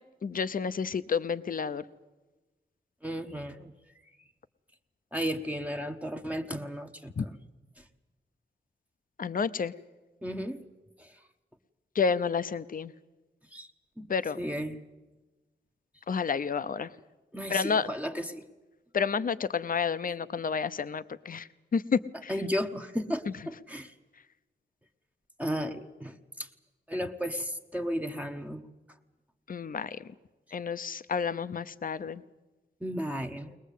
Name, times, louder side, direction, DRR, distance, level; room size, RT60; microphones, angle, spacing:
voice 1, 0.2-1.8 7.2-7.3 9.2-9.7 12.0-12.9 14.1-14.4 16.1-16.9 17.5-17.9 18.9-22.3 29.5-29.9 30.5-32.2, left 6 dB, 50° left, 14 dB, 0.7 m, -30 dB
voice 2, 3.0-3.7 5.1-7.3 10.2-10.6 11.0-11.1 13.5-13.7 14.0-14.1 14.4-14.8 17.3-18.4 22.3-23.9 25.4-26.5 26.9-28.6 32.8-33.6, equal, 5° right, 5 dB, 1.0 m, -34 dB
21.5 x 21.0 x 8.3 m, 1.2 s
wide cardioid pair, 145°, 19 cm